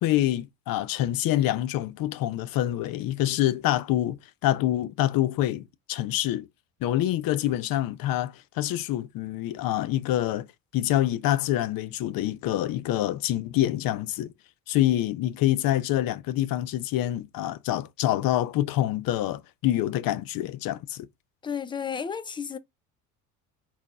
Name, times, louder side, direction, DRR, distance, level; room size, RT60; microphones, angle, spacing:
voice 1, 0.0-6.5 6.8-10.5 10.7-14.3 14.7-21.1, left 13 dB, 45° left, 0.7 m, -26 dB
voice 2, 21.4-22.6, left 7 dB, 10° left, 0.3 m, -32 dB
4.2 x 4.2 x 2.3 m
hypercardioid pair, 70°, 47 cm